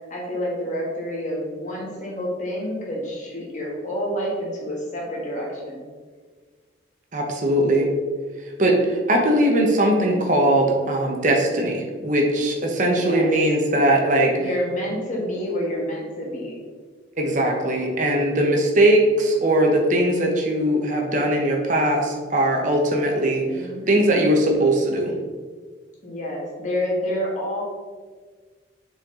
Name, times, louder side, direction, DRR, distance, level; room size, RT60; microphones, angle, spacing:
voice 1, 0.1-5.8 12.8-13.3 14.4-16.6 23.5-23.9 26.0-27.6, equal, 40° left, -4 dB, 1.6 m, -28 dB
voice 2, 7.1-7.9 8.6-14.3 17.2-25.1, right 1 dB, 40° right, 0 dB, 1.0 m, -20 dB
7.1 x 4.3 x 3.8 m, 1.5 s
head